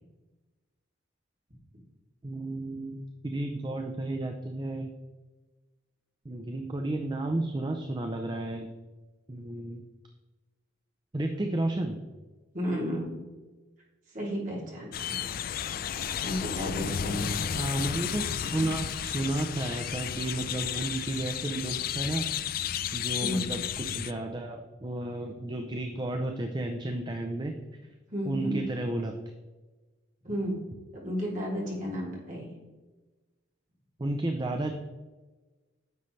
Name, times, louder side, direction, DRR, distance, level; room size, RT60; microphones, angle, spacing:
voice 1, 2.2-4.9 6.2-8.7 9.3-9.8 11.1-12.0 15.2-15.3 17.5-22.2 22.9-27.5 28.2-29.1 34.0-34.7, right 1 dB, 20° right, 3 dB, 0.5 m, -32 dB
voice 2, 12.5-13.1 14.1-15.2 16.2-17.3 23.2-23.5 28.1-28.6 30.2-30.6 31.0-32.5, equal, 40° right, -5 dB, 2.9 m, -32 dB
sound 1, 14.9-24.1, left 9 dB, 50° left, 0.3 m, -33 dB
9.7 x 6.6 x 3.2 m, 1.2 s
head